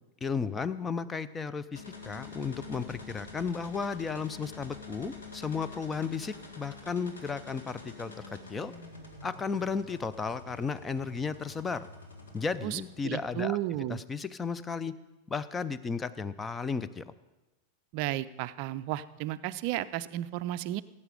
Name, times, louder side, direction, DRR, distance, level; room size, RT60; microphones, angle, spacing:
voice 1, 0.2-8.7 9.2-11.9 12.3-13.6 13.9-14.9 15.3-17.1, left 5 dB, 15° left, 15 dB, 0.5 m, -34 dB
sound 1, 1.7-13.4, left 3 dB, 70° left, 2.0 m, -47 dB
voice 2, 12.6-14.0 17.9-20.8, right 14 dB, 45° right, 14 dB, 0.4 m, -33 dB
17.0 x 8.4 x 5.0 m, 1.1 s
figure-of-eight pair, 90°, 0 cm